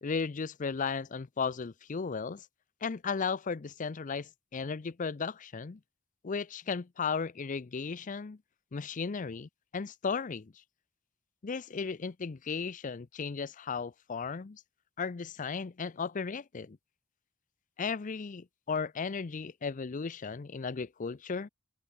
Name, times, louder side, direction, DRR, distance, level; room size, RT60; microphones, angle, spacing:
voice 1, 0.0-2.5 2.8-5.8 6.2-8.4 8.7-10.5 11.4-14.6 15.0-16.8 17.8-21.5, left 5 dB, 40° left, 0.5 m, -35 dB
head